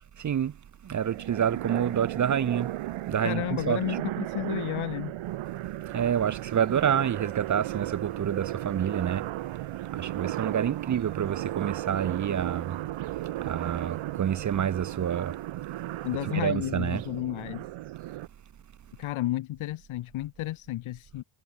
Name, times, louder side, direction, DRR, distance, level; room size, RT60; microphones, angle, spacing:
voice 1, 0.2-0.5 0.8-2.7 3.1-4.0 5.9-9.2 9.9-12.8 13.4-15.3 16.3-17.0, right 9 dB, 40° right, 1.2 m, -28 dB
sound 1, 1.0-18.3, right 15 dB, 80° right, 7.2 m, -35 dB
voice 2, 3.2-5.1 16.0-17.7 19.0-21.2, left 15 dB, 80° left, 5.6 m, -32 dB
cardioid pair, 140°, 47 cm